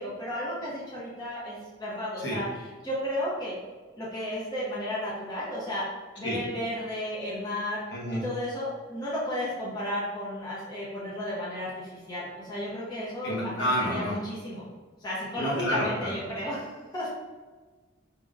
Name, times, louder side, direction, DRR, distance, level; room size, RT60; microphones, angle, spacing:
voice 1, 0.0-3.5 3.9-5.9 6.2-7.8 8.1-13.5 13.8-14.7 15.0-17.1, left 1 dB, 20° left, -7 dB, 0.8 m, -33 dB
voice 2, 7.9-8.2 13.2-14.2 15.3-16.2, equal, 65° left, -4 dB, 1.1 m, -29 dB
5.1 x 2.9 x 2.5 m, 1.3 s
head